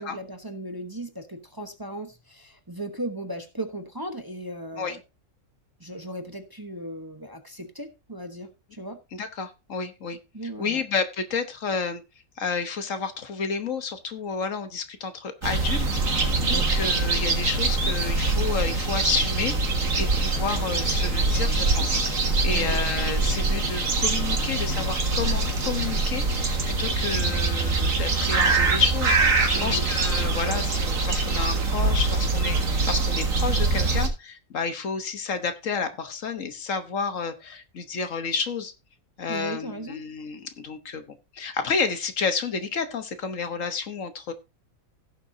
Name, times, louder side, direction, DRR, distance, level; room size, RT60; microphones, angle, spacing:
voice 1, 0.0-5.0 5.8-9.0 10.3-10.8 16.5-16.7 22.5-22.8 29.5-29.8 39.3-40.0, right 1 dB, 15° right, 6 dB, 1.0 m, -36 dB
voice 2, 9.1-10.2 10.6-12.0 12.4-38.7 39.2-44.3, left 5 dB, 65° left, 9 dB, 1.5 m, -30 dB
sound 1, 15.4-34.1, right 3 dB, 70° right, 2.2 m, -24 dB
16.5 x 7.2 x 2.7 m, 0.27 s
omnidirectional pair, 1.5 m